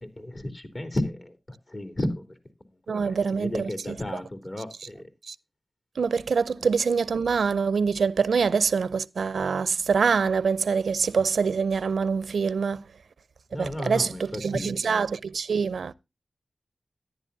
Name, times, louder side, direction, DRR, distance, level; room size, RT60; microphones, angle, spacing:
voice 1, 0.0-2.2 2.9-5.0 6.6-6.7 13.5-14.7, left 1 dB, 45° left, 3.1 m, -33 dB
voice 2, 2.9-4.0 5.3-5.4 6.0-12.8 13.5-15.9, right 5 dB, 85° right, 0.5 m, -25 dB
13.5 x 10.5 x 2.7 m
cardioid pair, 45°, 0 cm